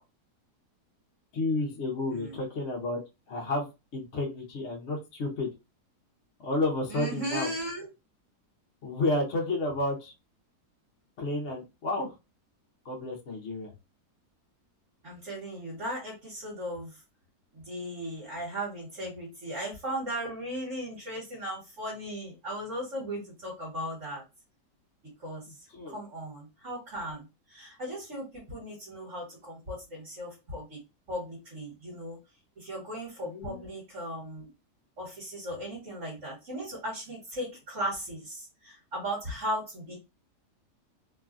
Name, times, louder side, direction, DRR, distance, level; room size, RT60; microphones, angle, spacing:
voice 1, 1.3-3.0 3.3-3.7 3.9-5.5 6.4-7.5 8.8-10.1 11.2-12.1 12.8-13.7 25.7-26.0 33.3-33.6, left 2 dB, 55° left, 0 dB, 0.8 m, -31 dB
voice 2, 6.9-7.9 15.0-16.9 17.5-24.2 25.2-25.4 25.9-27.2 27.5-30.8 31.1-32.2 32.6-34.5 35.0-40.0, right 1 dB, 50° right, -5 dB, 1.5 m, -37 dB
3.1 x 2.3 x 2.4 m, 0.25 s
omnidirectional pair, 1.7 m